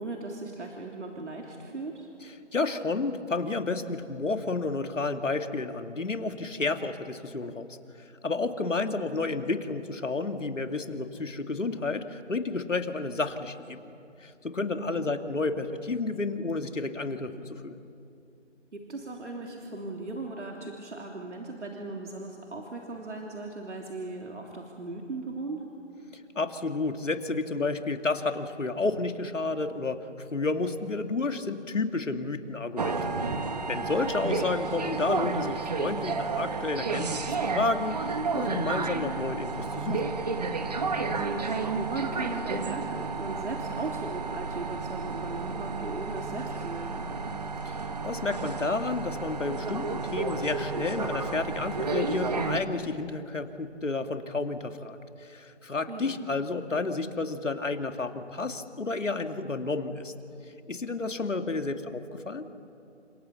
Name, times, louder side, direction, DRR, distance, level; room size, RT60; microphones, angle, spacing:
voice 1, 0.0-2.1 9.2-9.4 14.8-15.1 18.7-25.6 33.9-34.8 41.1-47.2 55.9-56.2, right 3 dB, 70° right, 0 dB, 3.2 m, -38 dB
voice 2, 2.5-7.8 8.2-13.9 14.2-17.8 26.4-33.1 33.7-40.1 47.7-47.8 48.0-60.1 60.7-62.5, left 3 dB, 85° left, 6 dB, 2.3 m, -31 dB
sound 1, 32.8-52.6, right 4 dB, 35° right, 1.4 m, -31 dB
29.5 x 26.5 x 7.1 m, 2.7 s
figure-of-eight pair, 170°, 36 cm